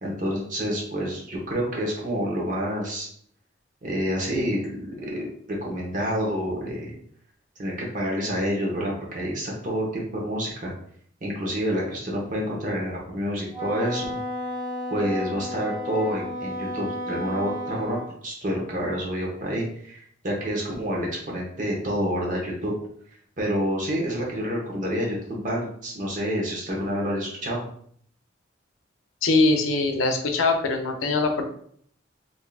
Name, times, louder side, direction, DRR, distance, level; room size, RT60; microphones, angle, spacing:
voice 1, 0.0-3.1 3.8-6.9 7.6-10.7 11.2-14.2 14.9-22.7 23.4-27.7, equal, 40° right, -2 dB, 0.9 m, -28 dB
Wind instrument woodwind instrument, 13.5-18.1, left 1 dB, ahead, 1.2 m, -32 dB
voice 2, 29.2-31.5, left 3 dB, 90° left, 4 dB, 0.6 m, -22 dB
3.5 x 2.6 x 2.3 m, 0.63 s
head